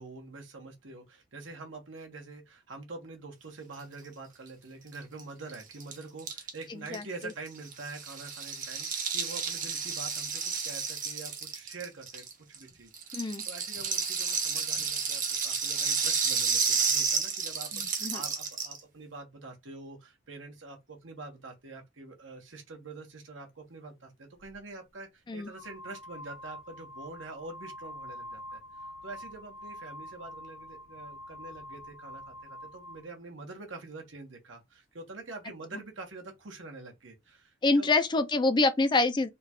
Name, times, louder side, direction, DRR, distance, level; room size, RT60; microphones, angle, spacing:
voice 1, 0.0-37.9, right 3 dB, 75° right, 1.3 m, -46 dB
Rattle (instrument), 4.9-5.0 5.2-5.3 5.5-12.6 12.9-18.8, right 6 dB, 45° right, 1.1 m, -31 dB
voice 2, 6.7-7.0 13.1-13.4 17.7-18.2 25.3-25.5 37.6-39.3, left 3 dB, 25° left, 0.4 m, -26 dB
sound 1, 24.4-24.6 25.4-33.1, left 1 dB, 85° left, 0.6 m, -46 dB
3.7 x 2.4 x 4.3 m
head